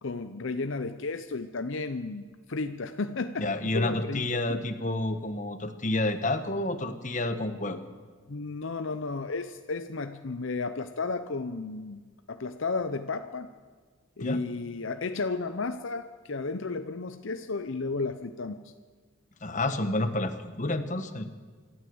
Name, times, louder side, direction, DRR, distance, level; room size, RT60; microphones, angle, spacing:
voice 1, 0.0-3.5 3.7-4.6 8.3-12.0 12.3-13.5 14.2-18.7, left 3 dB, 65° left, 9 dB, 0.7 m, -33 dB
voice 2, 3.4-7.8 14.2-14.4 19.4-21.3, left 2 dB, 35° left, 9 dB, 1.3 m, -29 dB
26.5 x 13.0 x 7.9 m, 1.5 s
head